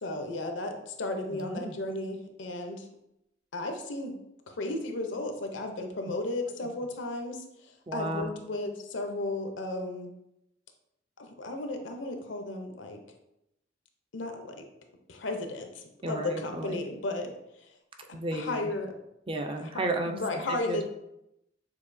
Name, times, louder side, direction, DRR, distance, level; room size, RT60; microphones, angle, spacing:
voice 1, 0.0-2.9 3.5-4.2 4.5-7.4 7.9-10.1 11.2-13.0 14.1-14.6 15.1-17.3 18.3-18.9 19.6-19.7 20.1-20.8, left 2 dB, 70° left, 4 dB, 0.6 m, -34 dB
voice 2, 1.3-1.7 7.9-8.3 16.0-16.8 18.1-18.7 19.3-20.1 20.5-20.8, right 2 dB, 30° right, 4 dB, 0.4 m, -33 dB
6.6 x 2.7 x 2.6 m, 0.84 s
head